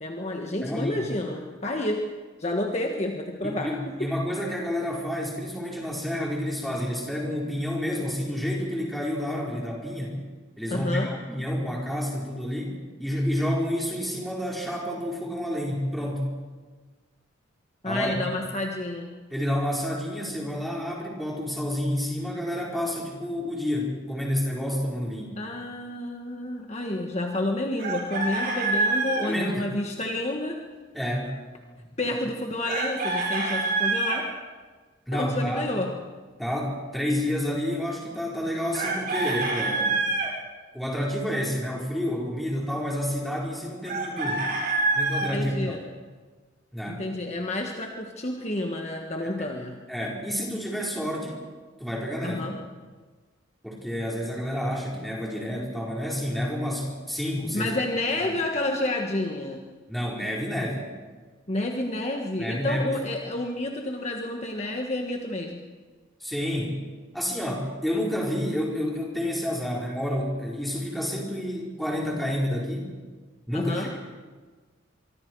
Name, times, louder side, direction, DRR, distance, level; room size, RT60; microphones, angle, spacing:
voice 1, 0.0-2.0 2.4-3.7 4.0-4.1 10.7-11.1 17.8-19.1 25.4-30.6 32.0-34.3 35.1-35.9 45.2-45.8 46.9-49.8 52.2-52.6 57.5-59.6 61.5-65.6 73.5-73.9, left 1 dB, 35° left, 2 dB, 1.5 m, -29 dB
voice 2, 0.6-1.1 3.4-10.2 10.6-12.7 13.0-16.3 17.8-18.2 19.3-25.4 29.2-29.6 30.9-31.3 35.1-35.7 36.4-40.0 40.7-44.5 44.9-45.8 46.7-47.1 49.9-51.4 51.8-52.4 53.6-57.7 58.2-58.4 59.9-60.8 62.4-63.0 66.2-66.7 67.1-72.9 73.5-74.0, equal, ahead, -3 dB, 4.9 m, -29 dB
Chicken rooster, 27.8-29.3 32.7-34.2 38.7-40.3 43.8-45.3, right 3 dB, 45° right, 4.7 m, -26 dB
25.5 x 24.0 x 4.8 m, 1.4 s
head